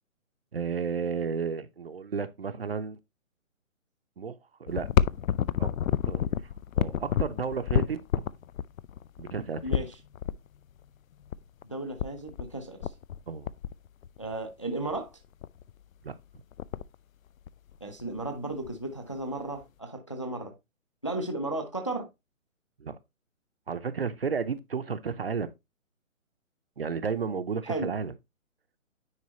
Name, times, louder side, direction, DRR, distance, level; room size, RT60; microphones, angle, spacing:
voice 1, 0.5-3.0 4.2-4.9 5.6-5.7 6.1-6.2 6.8-8.0 9.2-9.9 13.3-13.5 16.0-16.1 22.8-23.0 23.7-25.5 26.8-28.1, right 6 dB, 45° right, 0.6 m, -32 dB
sound 1, 4.7-10.3 11.3-11.4 11.6-11.7 12.0-12.5 12.8-13.2 13.4-14.3 14.9-15.0 15.4-15.7 16.1-16.2 16.3-17.0 17.5-18.3 18.7-18.8 19.6-19.7, left 9 dB, 80° left, 0.5 m, -29 dB
voice 2, 9.6-9.9 11.6-12.9 14.2-15.1 17.8-20.5 21.0-22.1 27.6-27.9, right 2 dB, 25° left, 0.5 m, -34 dB
9.6 x 4.3 x 2.8 m
hypercardioid pair, 170°, 41 cm